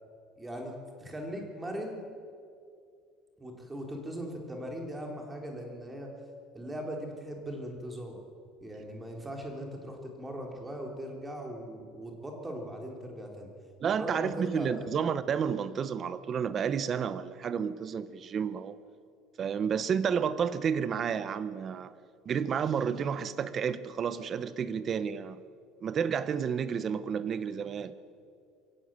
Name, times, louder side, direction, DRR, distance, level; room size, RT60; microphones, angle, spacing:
voice 1, 0.4-2.0 3.4-6.1 6.5-8.2 8.6-13.5 14.0-15.0, equal, 10° right, 3.6 m, -39 dB
voice 2, 13.8-18.8 19.4-21.9 22.2-25.4 25.8-27.9, right 7 dB, 30° right, 1.0 m, -31 dB
22.5 x 16.5 x 8.9 m
cardioid pair, 145°, 0 cm